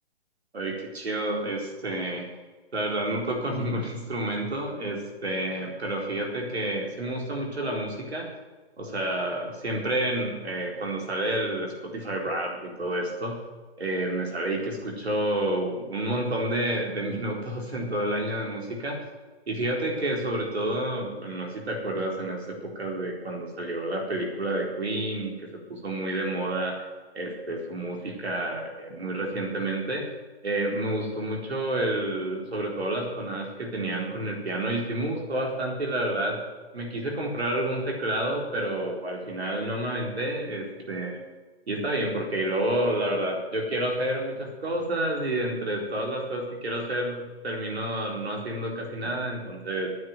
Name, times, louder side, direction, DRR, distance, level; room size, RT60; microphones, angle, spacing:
voice 1, 0.5-2.2 2.7-8.3 8.8-13.4 13.8-19.0 19.5-25.3 25.7-26.8 27.1-30.1 30.4-36.4 36.7-41.2 41.7-49.9, right 1 dB, 80° right, 0 dB, 4.3 m, -29 dB
9.4 x 9.1 x 9.5 m, 1.3 s
hypercardioid pair, 135°, 31 cm